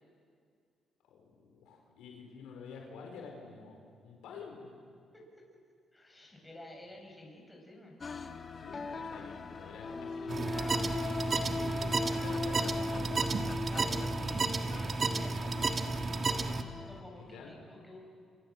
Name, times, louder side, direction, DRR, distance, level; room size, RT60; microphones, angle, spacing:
voice 1, 1.1-4.7 8.6-10.9 11.3-13.2 17.1-17.6, left 4 dB, 90° left, 1 dB, 5.1 m, -49 dB
voice 2, 5.1-5.5 5.9-7.9 11.1-11.5 13.7-16.1 16.9-18.0, left 1 dB, 15° left, 0 dB, 7.9 m, -51 dB
sound 1, 8.0-17.0, left 3 dB, 40° left, 1.8 m, -39 dB
sound 2, 10.3-16.6, right 3 dB, 40° right, 1.7 m, -32 dB
27.5 x 26.0 x 7.7 m, 2.2 s
cardioid pair, 90°, 0 cm